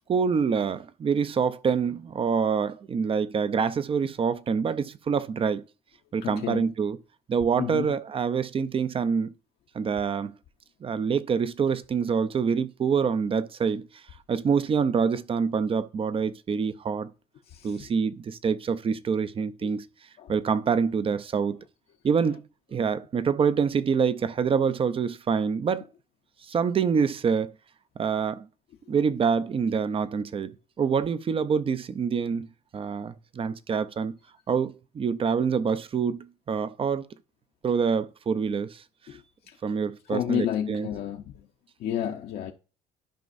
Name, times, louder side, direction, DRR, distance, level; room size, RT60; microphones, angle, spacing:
voice 1, 0.1-5.6 6.1-7.0 7.3-9.3 9.7-10.3 10.8-13.9 14.3-17.1 17.6-19.9 20.3-21.6 22.0-22.4 22.7-25.8 26.4-27.5 28.0-28.5 28.9-32.5 32.7-34.2 34.5-37.1 37.6-38.8 39.6-40.9, right 6 dB, 35° right, 0.5 m, -26 dB
voice 2, 6.2-6.6 7.6-8.0 17.5-17.9 20.2-20.3 39.1-39.2 39.5-39.6 40.1-41.5 41.8-42.5, left 10 dB, 65° left, 0.8 m, -31 dB
12.5 x 5.3 x 2.6 m
cardioid pair, 110°, 17 cm